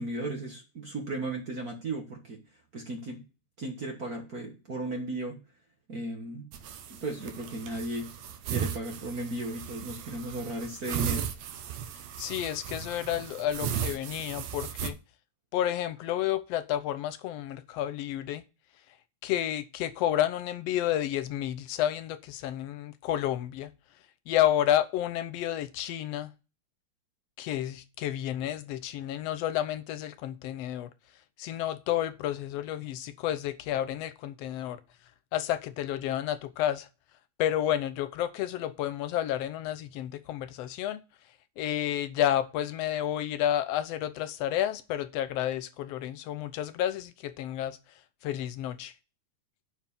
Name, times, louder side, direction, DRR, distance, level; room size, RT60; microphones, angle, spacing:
voice 1, 0.0-2.4 2.7-3.2 3.6-5.4 5.9-6.5 6.9-8.1 8.4-11.3, right 1 dB, 40° right, 1.5 m, -35 dB
sound 1, 6.5-14.9, right 9 dB, 70° right, 2.1 m, -36 dB
voice 2, 12.2-15.0 15.5-18.4 19.2-23.7 24.3-26.3 27.4-30.9 31.4-34.8 35.3-36.9 37.4-41.0 41.6-47.8 48.2-48.9, left 11 dB, 70° left, 1.6 m, -30 dB
9.4 x 4.6 x 7.2 m
omnidirectional pair, 3.4 m